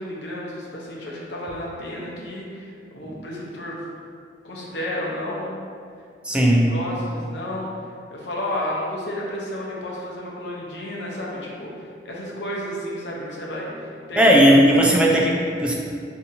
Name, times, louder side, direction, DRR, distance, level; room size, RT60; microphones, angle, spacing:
voice 1, 0.0-3.8 4.4-5.6 6.3-7.7 8.1-14.4 14.7-14.8, left 1 dB, 75° left, -4 dB, 0.7 m, -32 dB
voice 2, 6.2-6.7 14.2-15.7, equal, 5° right, -2 dB, 0.4 m, -16 dB
3.9 x 2.7 x 2.6 m, 2.3 s
head